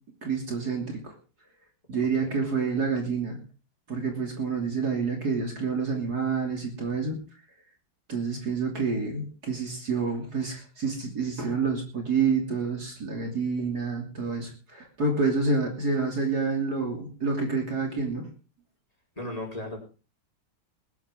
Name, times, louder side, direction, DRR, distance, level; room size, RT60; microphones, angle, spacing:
voice 1, 0.2-1.1 1.9-3.4 3.9-7.2 8.1-18.3, right 4 dB, 50° right, 1 dB, 3.5 m, -28 dB
voice 2, 19.2-19.8, left 1 dB, 15° left, 0 dB, 5.0 m, -35 dB
21.0 x 11.0 x 3.8 m, 0.36 s
omnidirectional pair, 2.2 m